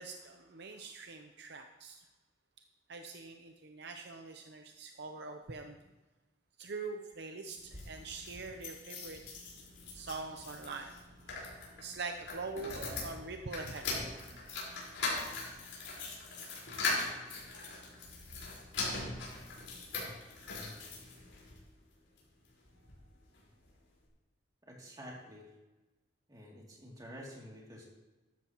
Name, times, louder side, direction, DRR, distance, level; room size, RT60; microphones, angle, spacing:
voice 1, 0.0-2.0 2.9-5.8 6.6-9.2 9.9-11.0 11.3-11.4 11.8-14.0, right 3 dB, 60° right, 5 dB, 0.8 m, -43 dB
sound 1, 7.6-21.6 22.2-23.0 23.3-23.4 23.7-23.8, left 3 dB, 85° left, 4.7 m, -41 dB
voice 2, 24.7-25.5 26.3-27.8, equal, 20° right, -3 dB, 2.8 m, -49 dB
13.5 x 12.5 x 3.1 m, 1.1 s
head